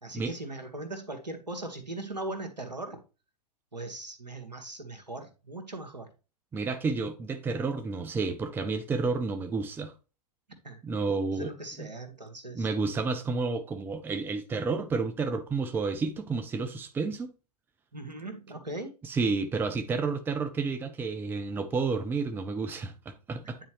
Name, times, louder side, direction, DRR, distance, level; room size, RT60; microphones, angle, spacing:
voice 1, 0.0-3.0 3.7-6.1 10.6-10.8 11.3-12.7 17.9-19.0 23.4-23.5, right 2 dB, 85° right, 1.6 m, -39 dB
voice 2, 6.5-9.9 10.8-11.5 11.8-11.9 12.5-17.3 19.0-23.6, right 4 dB, 10° right, 0.6 m, -30 dB
9.3 x 4.2 x 3.1 m
figure-of-eight pair, 110°, 21 cm